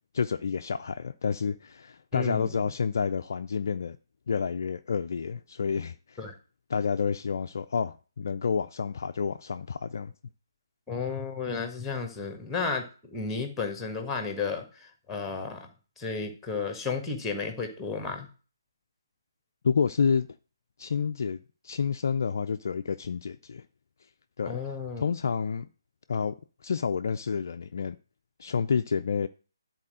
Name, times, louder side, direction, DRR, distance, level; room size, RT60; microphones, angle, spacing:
voice 1, 0.1-4.0 4.3-6.2 6.7-10.1 19.6-20.3 20.8-21.4 21.6-23.6 24.4-24.6 25.0-25.7 26.1-26.4 26.6-28.0 28.4-29.3, left 6 dB, 45° left, 0.4 m, -29 dB
voice 2, 2.1-2.6 6.2-6.3 10.9-15.7 16.0-18.3 24.4-25.0, left 5 dB, 5° left, 1.4 m, -33 dB
10.5 x 4.3 x 6.2 m
figure-of-eight pair, 145°, 2 cm